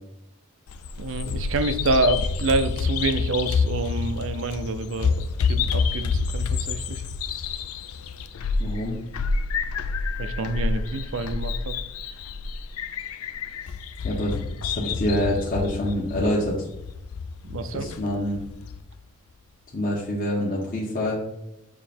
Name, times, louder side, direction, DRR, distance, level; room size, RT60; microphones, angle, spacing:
Bird vocalization bird call bird song, 0.7-18.8, left 4 dB, 85° left, 0.5 m, -28 dB
voice 1, 1.0-5.1 5.4-7.0 10.2-11.7 17.5-17.9, right 2 dB, 60° right, 10 dB, 0.5 m, -27 dB
voice 2, 8.6-8.9 13.7-13.8 14.0-16.5 17.7-18.4 19.7-21.3, left 1 dB, 40° left, -4 dB, 1.1 m, -26 dB
7.1 x 3.2 x 4.3 m, 0.82 s
head